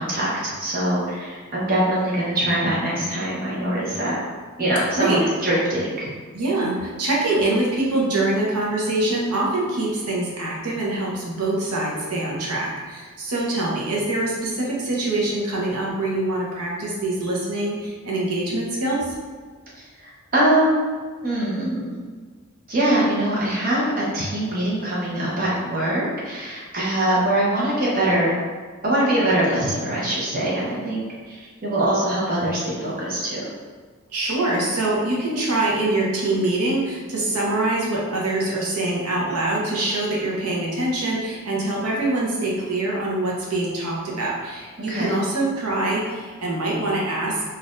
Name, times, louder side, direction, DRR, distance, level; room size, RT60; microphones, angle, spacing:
voice 1, 0.0-4.2 4.6-6.1 19.8-20.7 21.2-22.0 22.7-28.4 28.8-33.4 44.9-45.1, right 1 dB, 40° right, -6 dB, 0.9 m, -23 dB
voice 2, 6.3-19.1 34.1-47.4, right 2 dB, 90° right, -4 dB, 0.9 m, -24 dB
4.1 x 2.6 x 2.5 m, 1.5 s
head